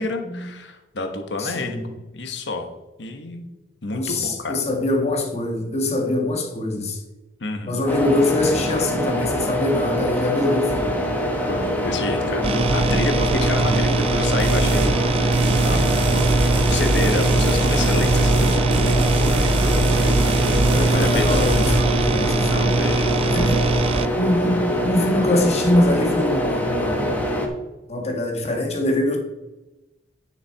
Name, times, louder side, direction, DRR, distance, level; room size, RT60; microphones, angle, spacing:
voice 1, 0.0-1.8 2.1-2.7 3.0-3.5 3.8-4.6 7.4-7.8 11.4-18.7 19.0-19.2 20.9-21.4 22.5-23.1, left 2 dB, 65° left, 5 dB, 1.1 m, -29 dB
voice 2, 1.4-1.8 3.9-7.0 7.6-11.0 20.6-22.5 23.3-23.6 24.2-27.1 27.9-29.2, left 1 dB, 35° left, 1 dB, 1.6 m, -23 dB
sound 1, 7.9-27.5, equal, 10° left, 1.3 m, -24 dB
sound 2, 12.4-24.1, right 3 dB, 30° right, 0.3 m, -22 dB
sound 3, 14.4-14.9 15.3-21.8, right 1 dB, 60° right, 2.4 m, -24 dB
9.7 x 6.5 x 4.6 m, 1.0 s
head